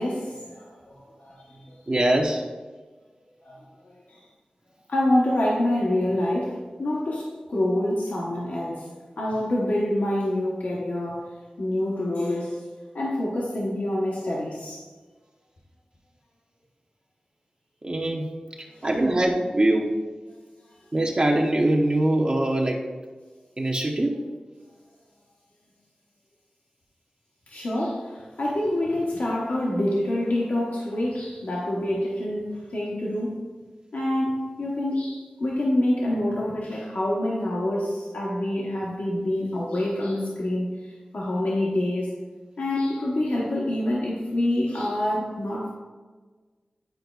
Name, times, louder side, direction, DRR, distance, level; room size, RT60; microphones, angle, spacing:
voice 1, 0.0-1.8 3.4-3.6 4.1-4.2 4.9-11.3 11.6-12.7 12.9-14.8 18.7-18.9 27.5-33.4 33.9-42.2 42.6-45.7, left 1 dB, 80° left, -4 dB, 1.0 m, -26 dB
voice 2, 1.9-2.4 17.8-18.3 18.8-19.9 20.9-22.8 23.6-24.1, right 1 dB, 40° right, -1 dB, 0.7 m, -22 dB
9.3 x 4.9 x 2.3 m, 1.4 s
wide cardioid pair, 70°, 3 cm